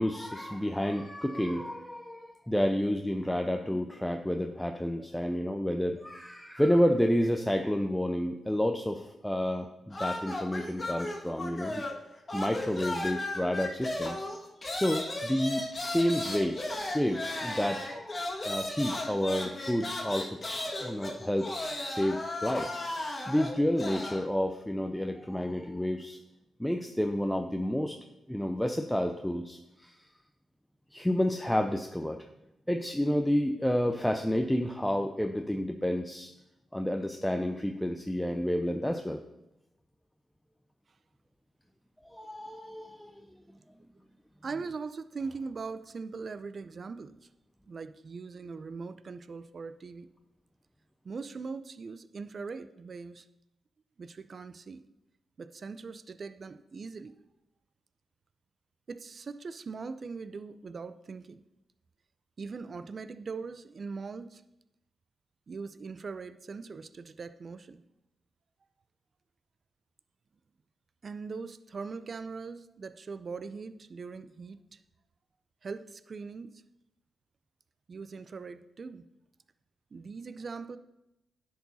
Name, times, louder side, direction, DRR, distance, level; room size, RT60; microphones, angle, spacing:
voice 1, 0.0-11.8 12.3-14.3 14.7-20.4 20.8-21.5 21.8-22.8 23.3-26.2 26.6-28.0 28.3-30.0 30.9-32.2 32.7-36.3 36.7-39.2 42.1-43.2, equal, 5° left, 5 dB, 0.6 m, -30 dB
sound 1, 9.9-12.0 12.3-24.2, left 2 dB, 35° left, 1.6 m, -35 dB
voice 2, 44.4-47.3 47.6-50.1 51.0-53.3 54.0-54.9 55.4-57.2 58.9-61.4 62.4-64.4 65.5-67.8 71.0-74.8 75.6-76.6 77.9-79.1 79.9-80.8, right 4 dB, 50° right, 13 dB, 0.5 m, -41 dB
10.0 x 4.7 x 4.2 m, 0.90 s
cardioid pair, 65°, 0 cm